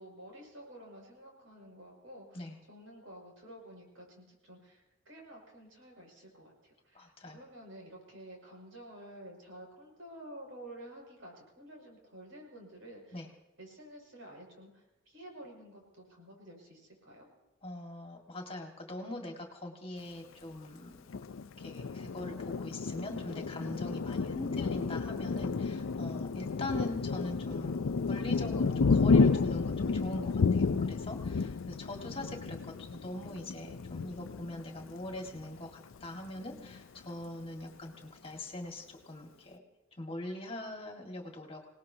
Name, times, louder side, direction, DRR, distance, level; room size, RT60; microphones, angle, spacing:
voice 1, 0.0-2.4 2.7-13.2 13.6-17.3, right 1 dB, 80° right, 0 dB, 6.4 m, -51 dB
voice 2, 6.9-7.4 13.1-13.3 17.6-20.9 21.6-39.6 40.0-41.7, left 1 dB, 25° left, 2 dB, 1.9 m, -42 dB
Thunder, 21.1-35.4 35.9-36.1 36.4-37.0, left 4 dB, 85° left, 0.5 m, -31 dB
27.0 x 18.5 x 2.9 m, 1.0 s
head